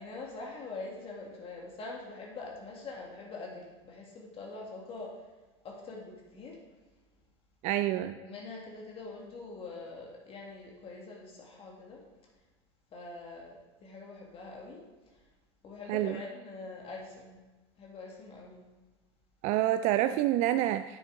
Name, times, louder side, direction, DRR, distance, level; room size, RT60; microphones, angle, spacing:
voice 1, 0.0-5.2 5.6-6.6 8.1-12.0 12.9-14.8 15.6-17.4 17.8-18.6, left 3 dB, 40° left, -1 dB, 2.0 m, -44 dB
voice 2, 7.6-8.2 15.9-16.2 19.4-21.0, right 13 dB, 55° right, 11 dB, 0.4 m, -27 dB
9.2 x 6.5 x 3.8 m, 1.2 s
hypercardioid pair, 95°, 15 cm